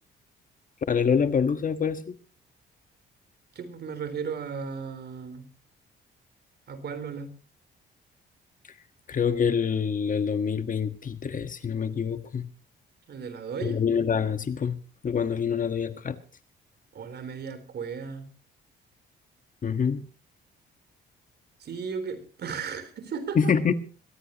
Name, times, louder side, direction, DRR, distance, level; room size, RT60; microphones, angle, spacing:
voice 1, 0.9-2.1 9.1-12.4 13.6-14.8 15.0-16.2 19.6-20.0 23.3-23.7, left 6 dB, 40° left, 1.4 m, -26 dB
voice 2, 3.6-5.5 6.7-7.4 13.1-13.8 16.9-18.3 21.6-23.5, right 6 dB, 55° right, 3.8 m, -35 dB
23.0 x 15.5 x 3.0 m
cardioid pair, 90°, 20 cm